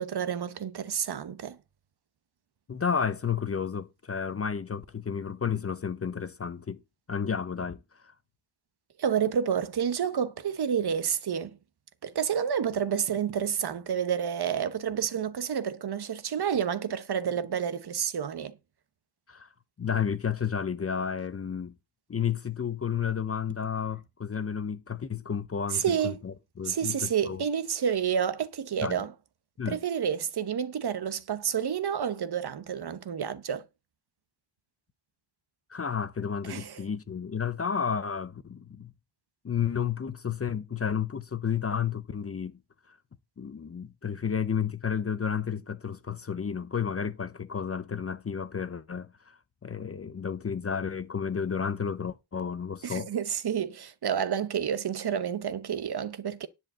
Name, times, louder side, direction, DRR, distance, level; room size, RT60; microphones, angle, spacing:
voice 1, 0.0-1.6 9.0-11.6 12.0-18.6 25.7-26.2 26.6-29.1 29.7-33.7 36.5-36.8 52.8-56.5, right 8 dB, 55° right, 1.0 m, -29 dB
voice 2, 2.7-6.8 7.1-7.8 19.3-19.5 19.8-21.7 22.1-27.4 28.8-29.0 29.6-29.8 35.7-38.9 39.4-42.6 42.9-43.0 43.4-53.1, left 7 dB, 30° left, 0.7 m, -32 dB
10.5 x 4.5 x 7.8 m
wide cardioid pair, 170°, 47 cm